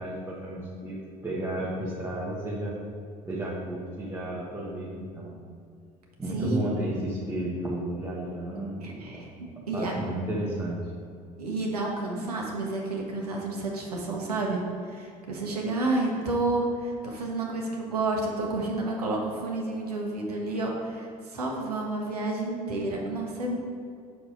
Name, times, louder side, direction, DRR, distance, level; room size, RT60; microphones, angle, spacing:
voice 1, 0.0-2.8 3.2-5.4 6.2-9.3 9.7-10.8, right 1 dB, 15° right, -7 dB, 1.5 m, -33 dB
voice 2, 8.8-9.9 11.4-23.6, right 2 dB, 85° right, -1 dB, 1.1 m, -30 dB
6.5 x 4.8 x 5.0 m, 2.4 s
figure-of-eight pair, 60°, 19 cm